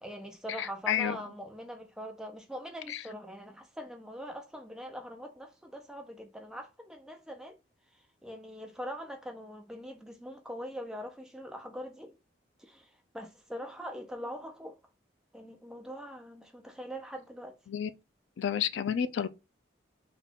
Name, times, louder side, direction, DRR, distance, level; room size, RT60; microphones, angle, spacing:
voice 1, 0.0-7.6 8.2-12.2 12.6-14.8 15.3-17.6, equal, 5° right, 0.5 m, -42 dB
voice 2, 0.6-1.2 2.9-3.0 17.7-17.9 18.4-19.3, left 8 dB, 70° left, 0.3 m, -30 dB
3.6 x 2.4 x 3.4 m
head